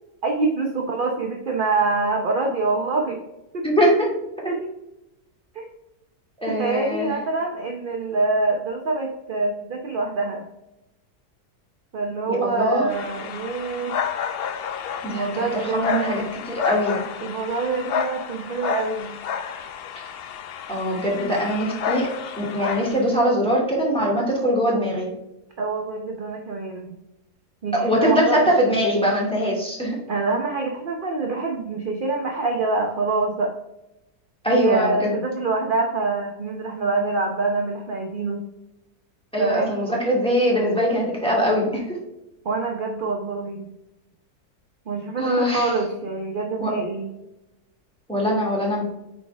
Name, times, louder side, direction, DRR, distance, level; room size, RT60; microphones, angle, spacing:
voice 1, 0.2-3.2 3.5-3.6 4.5-4.7 5.5-5.7 6.5-10.5 11.9-14.0 15.1-16.2 17.2-19.2 25.6-27.0 27.6-28.5 30.1-33.5 34.5-38.4 39.4-39.8 42.4-43.7 44.9-47.1, right 3 dB, 40° right, 1 dB, 0.8 m, -25 dB
voice 2, 3.6-4.1 6.4-7.1 12.3-12.9 15.0-17.0 20.7-22.1 22.4-25.1 27.7-30.0 34.4-35.1 39.3-42.0 45.2-45.7 46.6-46.7 48.1-48.8, equal, 5° left, -4 dB, 2.2 m, -22 dB
sound 1, 12.9-23.1, left 7 dB, 90° left, 0.5 m, -31 dB
8.4 x 4.9 x 3.4 m, 0.92 s
omnidirectional pair, 1.7 m